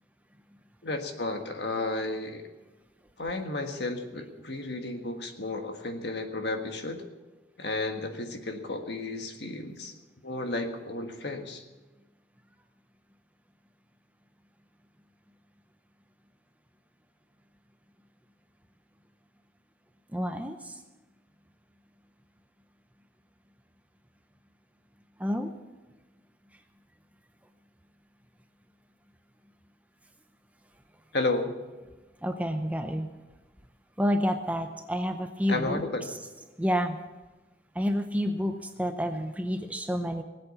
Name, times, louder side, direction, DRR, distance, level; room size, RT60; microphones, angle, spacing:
voice 1, 0.8-2.5 3.2-7.0 7.6-9.9 10.2-11.6 31.1-31.5 35.5-36.1, left 2 dB, 65° left, 5 dB, 1.6 m, -32 dB
voice 2, 20.1-20.8 25.2-25.5 32.2-33.1 34.0-35.8 36.6-37.0 37.7-40.2, equal, 10° right, 6 dB, 0.7 m, -29 dB
20.5 x 8.2 x 7.0 m, 1.2 s
head